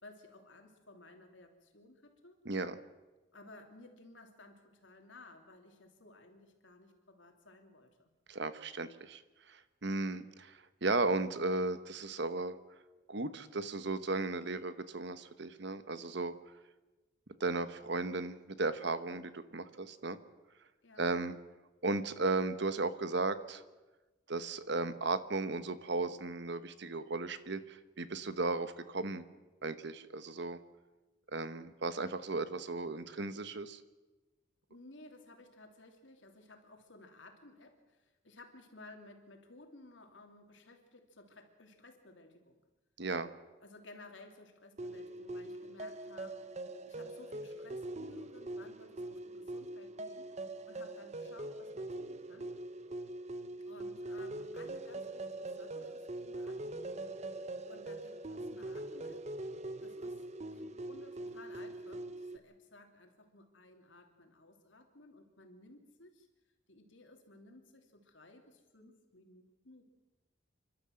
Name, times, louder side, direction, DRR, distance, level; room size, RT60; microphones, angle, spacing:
voice 1, 0.0-2.4 3.3-8.1 20.8-21.0 34.7-42.6 43.6-46.6 46.9-52.6 53.6-57.4 57.7-59.3 59.8-66.3 66.7-69.9, left 2 dB, 75° left, 4 dB, 3.0 m, -57 dB
voice 2, 2.4-2.8 8.3-9.2 9.5-12.5 13.1-16.3 17.4-20.2 21.0-21.3 21.8-23.6 24.3-29.2 29.6-30.6 31.3-33.8 43.0-43.3, right 3 dB, 60° right, 13 dB, 1.1 m, -35 dB
sound 1, 44.8-62.4, right 2 dB, 35° right, 0.8 m, -43 dB
29.5 x 12.5 x 7.8 m, 1.2 s
head